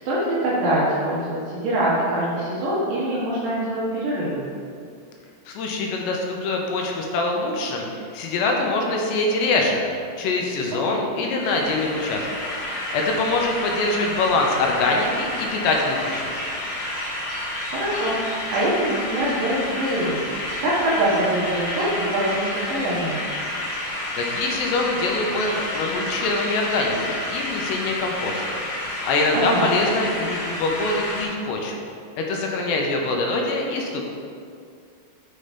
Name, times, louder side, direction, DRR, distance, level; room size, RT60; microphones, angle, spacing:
voice 1, 0.1-4.4 10.9-11.0 17.7-18.2 18.5-20.2 20.6-23.2 29.3-29.7, right 1 dB, 65° right, -7 dB, 2.4 m, -24 dB
voice 2, 5.5-9.8 10.2-12.3 12.9-16.4 24.2-28.6 29.0-31.8 32.2-34.1, left 2 dB, 80° left, 1 dB, 2.9 m, -24 dB
sound 1, 11.4-31.2, left 1 dB, 45° left, 2.1 m, -30 dB
6.5 x 5.8 x 5.0 m, 2.3 s
omnidirectional pair, 5.0 m